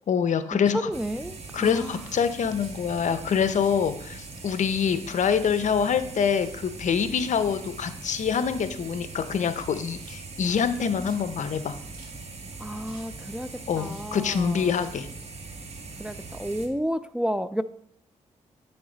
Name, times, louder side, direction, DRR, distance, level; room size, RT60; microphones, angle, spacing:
voice 1, 0.1-0.9 1.5-11.8 13.7-15.1, left 7 dB, 65° left, 11 dB, 0.7 m, -25 dB
voice 2, 0.7-2.0 12.6-14.8 16.0-17.6, equal, 5° right, 12 dB, 0.3 m, -31 dB
sound 1, 0.9-16.7, right 3 dB, 50° right, 1.3 m, -41 dB
sound 2, 1.6-1.8 2.3-2.8 3.3-3.4 3.6-3.8 4.4-4.9 5.2-5.8 6.2-6.6 7.3-7.6 8.2-8.4 9.0-9.6 9.9-10.4 10.8-10.9 11.1-11.2 11.7-12.1 12.6-13.0 13.3-14.4 14.6-14.9 15.5-16.4, right 3 dB, 80° right, 2.9 m, -54 dB
8.6 x 6.9 x 4.0 m, 0.68 s
cardioid pair, 85°, 13 cm